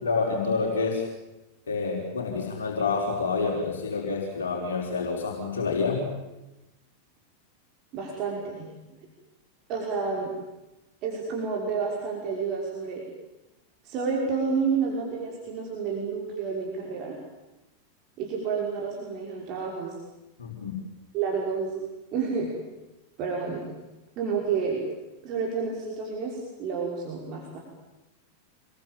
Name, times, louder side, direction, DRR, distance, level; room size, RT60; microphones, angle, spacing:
voice 1, 0.0-1.0 1.7-6.0 20.4-20.8, left 4 dB, 65° left, -1 dB, 5.2 m, -28 dB
voice 2, 7.9-9.0 9.7-10.3 11.0-13.0 13.8-17.2 18.2-19.9 21.1-21.8 22.1-22.5 23.2-23.7 24.2-24.8 25.2-27.6, right 5 dB, 40° right, -1 dB, 5.7 m, -30 dB
27.0 x 22.0 x 9.1 m, 1.0 s
figure-of-eight pair, 90°, 0 cm